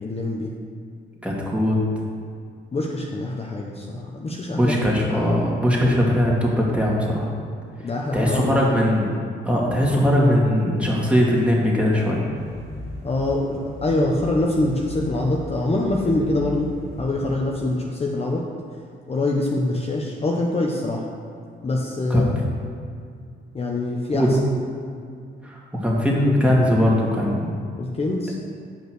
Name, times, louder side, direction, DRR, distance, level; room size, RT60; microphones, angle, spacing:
voice 1, 0.0-0.5 2.7-4.8 5.1-5.3 7.8-8.8 13.0-16.7 17.0-18.4 19.1-21.1 21.6-22.3 23.5-24.4 27.8-28.3, left 2 dB, 30° left, -1 dB, 1.0 m, -24 dB
voice 2, 1.2-1.8 4.5-7.3 8.1-9.1 9.4-12.2 22.1-22.3 24.1-24.3 25.4-27.5, equal, 5° right, -4 dB, 2.3 m, -20 dB
sound 1, 12.3-17.4, left 1 dB, 30° right, 2.3 m, -37 dB
8.6 x 5.6 x 6.2 m, 2.3 s
cardioid pair, 90°, 20 cm